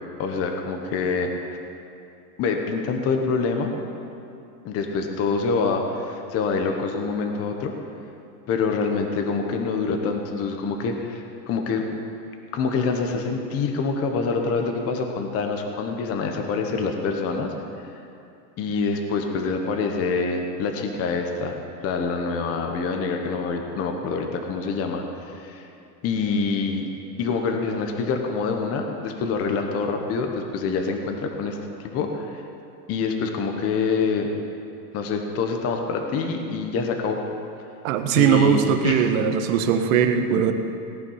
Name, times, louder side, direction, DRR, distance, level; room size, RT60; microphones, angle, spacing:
voice 1, 0.2-1.3 2.4-3.7 4.6-7.7 8.5-11.9 12.5-17.5 18.6-21.6 21.8-25.7 26.0-26.9 27.2-31.6 31.8-32.4 32.9-34.3 34.9-37.2 38.2-39.1, left 4 dB, 30° left, 4 dB, 1.2 m, -26 dB
voice 2, 37.8-40.5, right 8 dB, 55° right, 7 dB, 1.3 m, -20 dB
18.0 x 9.8 x 5.7 m, 2.6 s
supercardioid pair, 140°, 49 cm